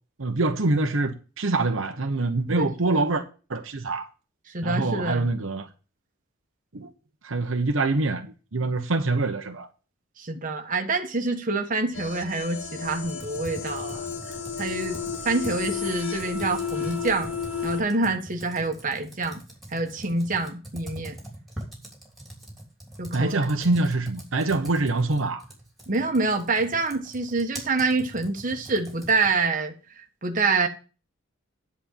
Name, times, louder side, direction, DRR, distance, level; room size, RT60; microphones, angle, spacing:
voice 1, 0.2-3.2 3.5-4.1 4.6-5.7 6.7-6.9 7.2-9.7 23.1-25.4, right 2 dB, 75° right, 1.0 m, -25 dB
voice 2, 2.5-3.0 4.5-5.3 10.2-17.3 17.6-19.4 19.7-21.2 23.0-23.5 25.9-30.7, right 3 dB, 40° right, 1.2 m, -27 dB
sound 1, 11.9-17.8, left 6 dB, 75° left, 1.6 m, -33 dB
Computer keyboard, 13.0-29.4, right 1 dB, ahead, 3.2 m, -43 dB
10.0 x 4.4 x 7.2 m
head